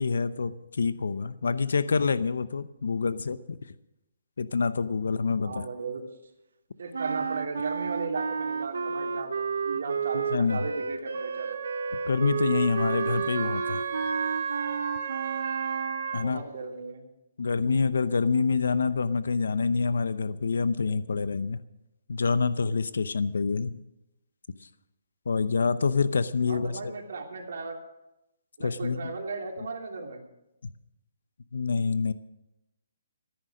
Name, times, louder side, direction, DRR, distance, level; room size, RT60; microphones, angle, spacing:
voice 1, 0.0-3.6 4.4-5.6 10.3-10.6 12.1-13.8 16.1-16.4 17.4-21.6 22.1-23.7 24.6-24.7 25.3-26.7 28.6-29.1 31.5-32.1, left 4 dB, 85° left, 15 dB, 0.7 m, -26 dB
voice 2, 5.4-6.0 6.8-9.3 9.6-11.6 16.2-17.0 26.5-27.8 28.6-30.2, right 4 dB, 60° right, 1 dB, 3.0 m, -36 dB
sound 1, 6.9-16.1, right 5 dB, 85° right, 0.7 m, -32 dB
Wind instrument woodwind instrument, 11.1-16.2, right 7 dB, 40° right, 1.5 m, -34 dB
14.0 x 10.5 x 6.4 m, 0.91 s
hypercardioid pair, 175°, 0 cm